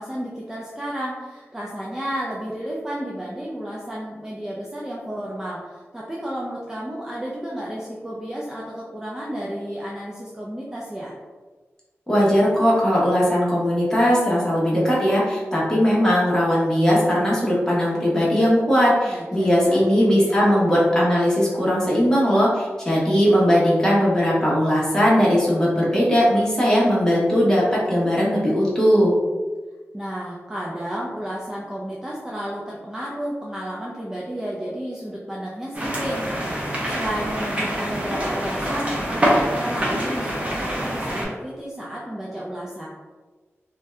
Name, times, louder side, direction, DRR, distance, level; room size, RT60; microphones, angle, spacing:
voice 1, 0.0-11.1 19.0-20.4 29.9-42.9, equal, 10° right, -5 dB, 0.4 m, -32 dB
voice 2, 12.1-29.1, equal, 10° left, -7 dB, 1.0 m, -19 dB
sound 1, 35.7-41.2, equal, 25° right, 0.8 m, -25 dB
2.6 x 2.3 x 3.2 m, 1.3 s
wide cardioid pair, 80°, 5 cm